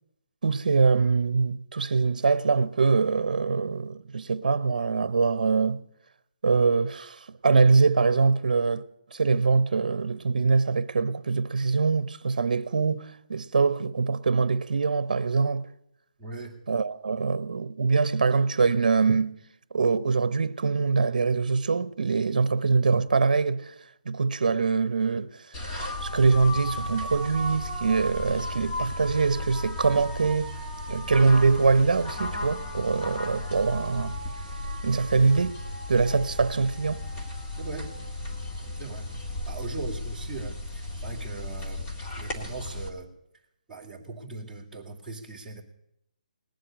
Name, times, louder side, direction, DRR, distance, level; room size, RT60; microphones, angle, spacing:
voice 1, 0.4-5.8 6.4-8.8 9.1-15.7 16.7-19.4 19.7-23.7 24.1-25.4 26.0-30.5 30.9-34.2 34.8-35.6 35.9-37.0, right 4 dB, 65° right, 0.8 m, -23 dB
voice 2, 16.2-16.6 37.6-37.9 38.8-39.1 39.5-41.9 42.2-43.1 43.7-45.6, right 3 dB, 5° right, 2.1 m, -39 dB
sound 1, 25.5-42.9, left 1 dB, 20° left, 1.5 m, -35 dB
19.0 x 7.8 x 8.9 m
hypercardioid pair, 170°, 5 cm